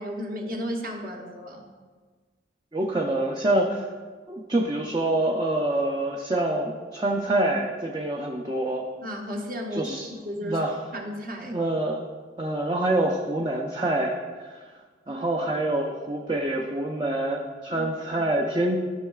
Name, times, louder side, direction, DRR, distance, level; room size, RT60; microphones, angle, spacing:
voice 1, 0.0-1.7 9.0-10.0 10.2-10.6 10.9-11.6 15.1-15.3 17.8-17.9, equal, 50° right, 0 dB, 1.1 m, -33 dB
voice 2, 2.7-3.9 4.3-8.8 9.7-10.1 10.4-10.8 11.4-12.1 12.4-14.6 15.1-18.8, right 1 dB, 25° right, 0 dB, 0.5 m, -26 dB
13.5 x 6.4 x 2.4 m, 1.4 s
head